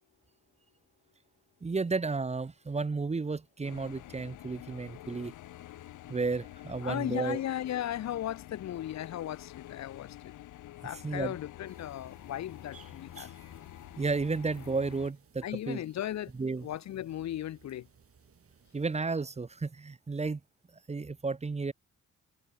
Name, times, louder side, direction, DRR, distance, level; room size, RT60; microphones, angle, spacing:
voice 1, 1.6-5.3 6.1-7.4 11.0-11.4 13.2-13.3 14.0-15.8 16.4-16.7 18.7-20.4 20.9-21.7, right 4 dB, 20° right, 1.2 m, -32 dB
sound 1, 3.6-15.1, left 14 dB, 80° left, 2.5 m, -48 dB
voice 2, 6.8-10.3 10.8-13.3 15.4-16.3 16.6-17.9, left 12 dB, 65° left, 1.0 m, -36 dB
sound 2, 11.7-19.0, right 7 dB, 50° right, 7.5 m, -61 dB
sound 3, 11.9-14.4, left 6 dB, 40° left, 6.3 m, -66 dB
cardioid pair, 90°, 30 cm